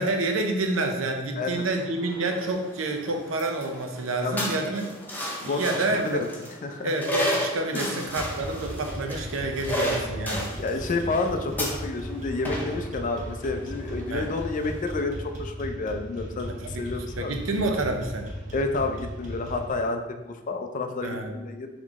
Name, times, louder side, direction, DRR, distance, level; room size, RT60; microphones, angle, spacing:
voice 1, 0.0-4.9 5.4-6.2 6.8-10.5 14.1-14.3 16.5-16.8 17.2-18.3 21.0-21.3, right 2 dB, 90° right, 4 dB, 0.6 m, -28 dB
sound 1, 1.5-15.0, equal, 10° left, 0.7 m, -34 dB
voice 2, 5.4-6.3 6.6-6.9 7.7-8.0 10.3-17.3 18.5-21.7, left 3 dB, 40° left, 6 dB, 0.4 m, -30 dB
sound 2, 8.1-19.7, equal, 40° right, 0.7 m, -37 dB
3.8 x 3.1 x 3.5 m, 1.1 s
head